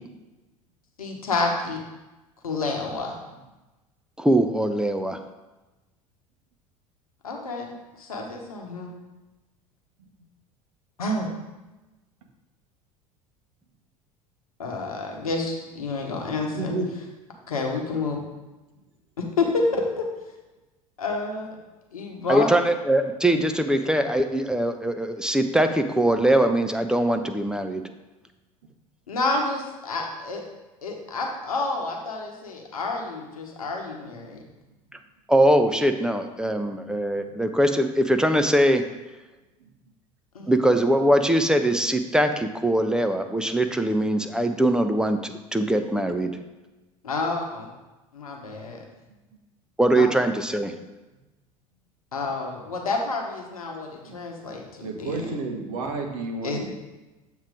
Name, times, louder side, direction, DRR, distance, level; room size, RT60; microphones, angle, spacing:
voice 1, 1.0-1.8 2.4-3.2 7.2-8.9 11.0-11.3 14.6-16.7 17.5-18.2 19.2-20.1 21.0-21.5 21.9-22.5 29.1-30.4 30.8-34.4 40.3-40.5 47.0-47.7 48.1-48.8 50.0-50.1 52.1-55.2 56.4-56.6, left 3 dB, 75° left, 1 dB, 1.0 m, -29 dB
voice 2, 4.2-5.2 22.3-27.8 35.3-38.8 40.5-46.3 49.8-50.7, right 1 dB, 5° right, 7 dB, 0.4 m, -22 dB
voice 3, 16.5-16.9 34.9-35.0 37.3-37.4 39.6-39.7 40.4-40.5 54.0-54.2 54.8-56.7, right 3 dB, 60° right, 3 dB, 1.0 m, -31 dB
7.3 x 3.0 x 5.0 m, 1.1 s
figure-of-eight pair, 70°, 18 cm